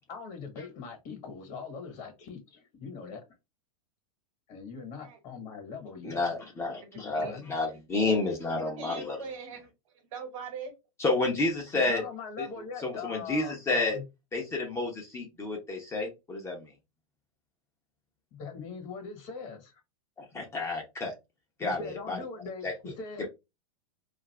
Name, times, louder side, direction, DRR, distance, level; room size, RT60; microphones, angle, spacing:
voice 1, 0.1-3.2 4.5-6.5 6.9-7.5 11.7-14.0 18.3-19.8 21.6-23.3, left 5 dB, 40° left, 1.1 m, -41 dB
voice 2, 6.0-9.2 11.0-12.0 12.4-12.5 12.8-14.0 14.3-16.7 20.3-21.1 21.6-21.8 22.1-22.2 22.6-22.7 23.2-23.3, left 3 dB, 15° left, 0.6 m, -30 dB
voice 3, 6.8-7.4 8.0-8.1 8.8-9.7 10.1-10.7, right 5 dB, 65° right, 1.2 m, -41 dB
2.5 x 2.4 x 3.2 m
hypercardioid pair, 135°, 18 cm